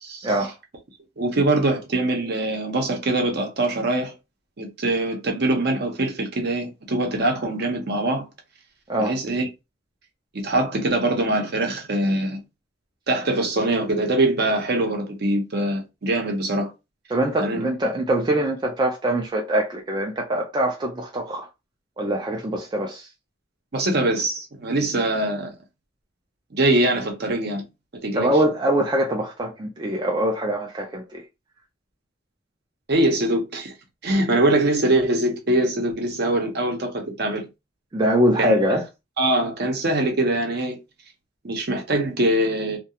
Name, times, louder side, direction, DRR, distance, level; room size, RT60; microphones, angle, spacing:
voice 1, 0.0-0.3 1.2-4.1 4.6-8.3 9.0-9.5 10.4-12.4 13.1-16.7 17.4-17.6 23.7-25.5 26.5-27.7 28.0-28.3 32.9-33.7 34.0-37.5 38.4-38.6 39.2-40.8 41.4-42.8, right 1 dB, 55° right, 0.7 m, -23 dB
voice 2, 17.1-21.5 22.0-23.1 28.1-31.2 37.9-38.8, right 1 dB, 25° right, 0.3 m, -23 dB
2.3 x 2.2 x 2.7 m
head